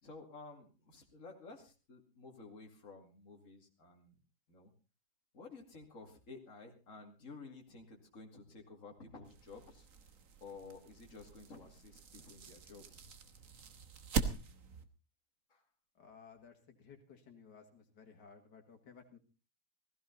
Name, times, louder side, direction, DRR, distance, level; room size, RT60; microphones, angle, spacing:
voice 1, 0.0-4.2 4.5-4.7 5.3-9.9 10.4-13.1 15.5-15.6, left 3 dB, 50° left, 2 dB, 2.9 m, -53 dB
sound 1, 9.2-14.8, right 5 dB, 55° right, 1.5 m, -42 dB
voice 2, 15.9-19.2, left 6 dB, 85° left, 4 dB, 2.5 m, -57 dB
16.0 x 15.5 x 4.0 m, 0.32 s
omnidirectional pair, 1.8 m